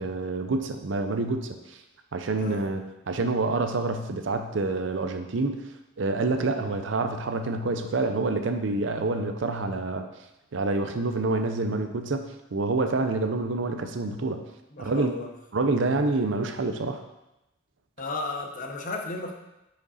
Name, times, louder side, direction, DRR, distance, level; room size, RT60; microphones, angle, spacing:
voice 1, 0.0-1.5 2.1-5.7 6.0-10.0 10.5-14.4 14.8-15.1 15.5-17.0, right 3 dB, 70° right, 7 dB, 0.6 m, -27 dB
voice 2, 2.4-2.7 6.7-6.8 14.7-15.3 18.0-19.3, left 2 dB, 45° left, 3 dB, 0.8 m, -34 dB
5.3 x 5.1 x 4.1 m, 0.94 s
head